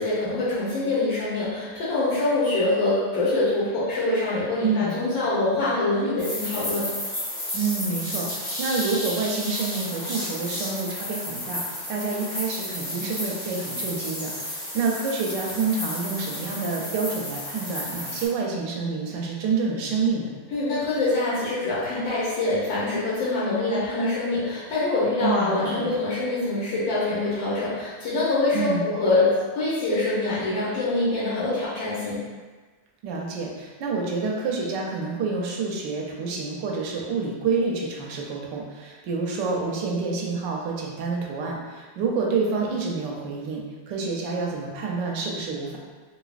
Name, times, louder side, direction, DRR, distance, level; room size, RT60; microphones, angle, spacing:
voice 1, 0.0-6.9 20.5-32.2, left 2 dB, 90° left, -9 dB, 1.6 m, -24 dB
voice 2, 4.6-4.9 7.5-11.6 11.9-20.3 25.2-25.9 28.5-28.8 33.0-45.8, right 4 dB, 80° right, -1 dB, 1.3 m, -28 dB
sound 1, 6.2-18.3, left 1 dB, 25° left, 1.2 m, -32 dB
4.0 x 2.7 x 2.4 m, 1.4 s
omnidirectional pair, 2.0 m